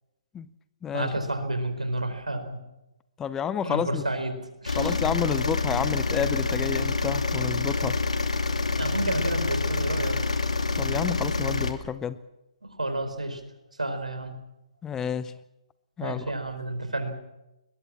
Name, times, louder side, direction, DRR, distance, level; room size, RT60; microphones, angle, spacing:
voice 1, 0.9-2.6 3.6-5.0 8.8-10.2 12.6-13.4 13.8-14.3 16.0-17.1, right 1 dB, 80° right, 8 dB, 4.6 m, -30 dB
voice 2, 3.2-4.0 4.8-8.0 10.8-12.2 14.8-15.3 16.0-16.3, left 8 dB, 10° left, 15 dB, 0.7 m, -30 dB
sound 1, 4.7-11.7, left 3 dB, 70° left, 2.5 m, -27 dB
21.5 x 21.0 x 7.4 m, 0.95 s
figure-of-eight pair, 130°, 4 cm